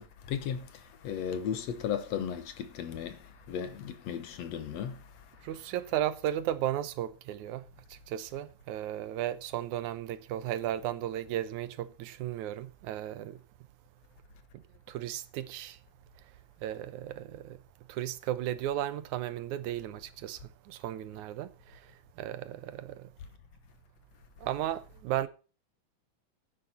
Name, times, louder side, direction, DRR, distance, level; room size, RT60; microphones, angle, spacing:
voice 1, 0.0-5.5, left 8 dB, 65° left, 2.2 m, -36 dB
voice 2, 5.4-7.6 7.9-13.4 14.5-15.8 16.6-17.6 17.9-23.1 24.4-25.3, right 12 dB, 85° right, 2.3 m, -35 dB
12.5 x 9.7 x 4.3 m
omnidirectional pair, 3.4 m